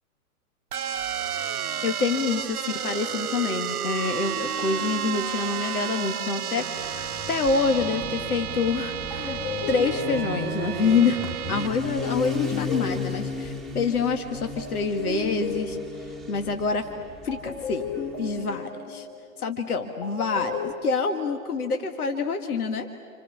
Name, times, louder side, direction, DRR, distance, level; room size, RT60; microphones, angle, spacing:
sound 1, 0.7-11.7, right 8 dB, 75° right, 1.0 m, -31 dB
voice 1, 1.8-9.4 9.7-15.8 16.3-16.9 17.2-17.9 18.2-19.1 19.4-22.9, left 4 dB, 75° left, 6 dB, 2.0 m, -27 dB
Motorcycle, 6.8-18.5, left 3 dB, ahead, 1.6 m, -36 dB
sound 2, 8.8-8.9 9.1-14.1 14.6-16.8 17.3-20.7, left 5 dB, 40° left, 7.4 m, -35 dB
30.0 x 28.0 x 7.2 m, 2.3 s
hypercardioid pair, 115°, 44 cm